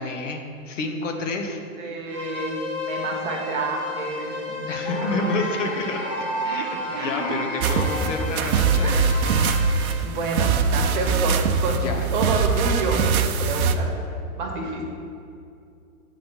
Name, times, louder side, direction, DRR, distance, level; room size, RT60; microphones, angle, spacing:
voice 1, 0.0-1.6 4.7-6.0 6.4-9.1 11.7-12.1, left 2 dB, 55° left, 4 dB, 1.1 m, -29 dB
voice 2, 1.8-5.1 5.5-5.6 6.9-7.4 8.8-9.0 10.0-11.8 12.1-13.0 13.4-13.9 14.4-14.8, right 3 dB, 35° right, 0 dB, 1.2 m, -29 dB
sound 1, 2.0-9.9, left 4 dB, 15° left, 0.5 m, -34 dB
sound 2, 4.8-9.0, right 1 dB, 35° left, 1.9 m, -32 dB
sound 3, 7.6-13.7, right 5 dB, 70° right, 0.7 m, -22 dB
8.4 x 4.2 x 6.1 m, 2.5 s
hypercardioid pair, 170°, 44 cm